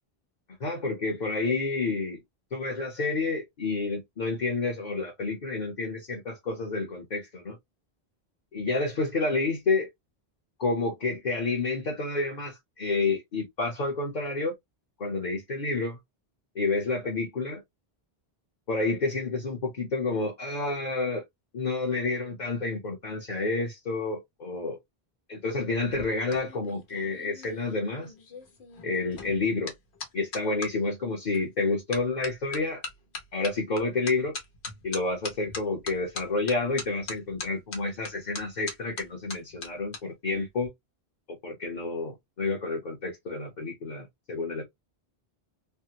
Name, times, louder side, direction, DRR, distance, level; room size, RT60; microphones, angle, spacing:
voice 1, 0.6-2.2 2.5-7.6 8.5-9.9 10.6-14.5 15.0-16.0 16.5-17.6 18.7-21.2 21.5-24.7 25.3-28.1 28.8-29.7 30.1-32.8 33.3-34.4 34.8-40.7 41.3-44.6, left 3 dB, 45° left, 0.9 m, -29 dB
sound 1, 25.7-30.7 31.3-31.6 31.9-40.0 40.3-40.7, left 4 dB, 85° left, 1.2 m, -41 dB
3.3 x 2.1 x 2.8 m
omnidirectional pair, 1.1 m